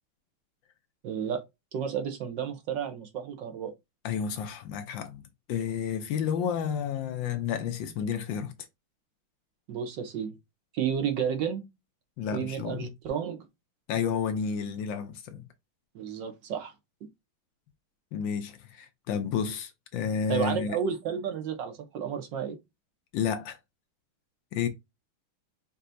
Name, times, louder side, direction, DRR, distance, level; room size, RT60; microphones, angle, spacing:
voice 1, 1.0-1.4 1.7-3.7 9.7-10.3 10.7-11.7 12.3-13.5 15.9-16.7 20.3-22.6, right 7 dB, 65° right, 1.4 m, -32 dB
voice 2, 4.0-5.2 5.5-8.5 12.2-12.9 13.9-15.5 18.1-20.8 23.1-23.6 24.5-24.7, left 7 dB, 75° left, 1.2 m, -31 dB
5.4 x 2.8 x 2.6 m
omnidirectional pair, 2.3 m